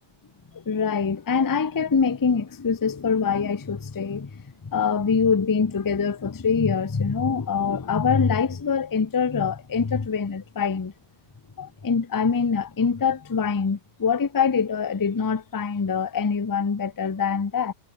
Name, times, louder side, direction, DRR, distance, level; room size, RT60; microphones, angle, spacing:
voice 1, 0.5-10.9 11.6-17.7, left 6 dB, 25° left, 0.5 m, -24 dB
omnidirectional pair, 1.3 m